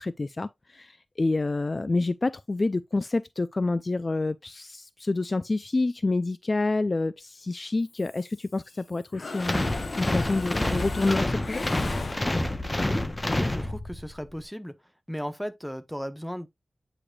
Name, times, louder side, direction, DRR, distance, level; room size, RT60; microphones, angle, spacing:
voice 1, 0.0-9.6 9.9-11.6, left 3 dB, 40° left, 0.3 m, -28 dB
Mechanisms, 7.9-8.8 9.1-12.7, left 3 dB, 55° left, 0.8 m, -37 dB
sound 1, 9.4-14.1, left 1 dB, 20° left, 0.9 m, -28 dB
voice 2, 13.3-14.7 15.1-16.5, equal, ahead, 0.9 m, -35 dB
8.6 x 5.0 x 2.3 m
wide cardioid pair, 80°, 0 cm